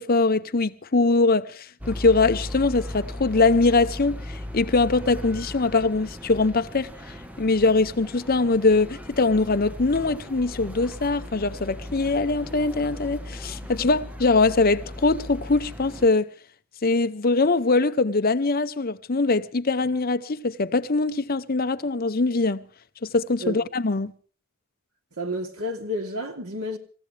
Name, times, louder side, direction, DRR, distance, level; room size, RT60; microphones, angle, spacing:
voice 1, 0.0-16.3 16.8-22.6 23.0-24.1, left 3 dB, 40° left, 0.8 m, -22 dB
sound 1, 1.8-16.1, left 1 dB, 5° right, 1.3 m, -37 dB
voice 2, 25.2-26.8, equal, 80° right, 2.9 m, -30 dB
27.5 x 15.5 x 3.4 m
head